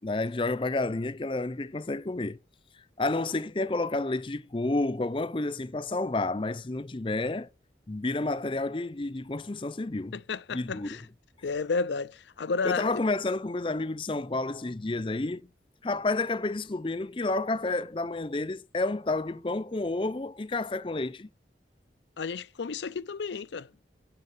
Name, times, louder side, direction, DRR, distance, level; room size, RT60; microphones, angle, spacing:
voice 1, 0.0-2.4 3.0-7.5 7.9-10.2 10.5-11.0 12.6-15.5 15.8-21.3, left 2 dB, 30° left, 0.5 m, -30 dB
voice 2, 10.1-11.0 11.4-13.0 22.2-23.7, left 4 dB, 80° left, 0.5 m, -32 dB
10.5 x 7.5 x 5.5 m
head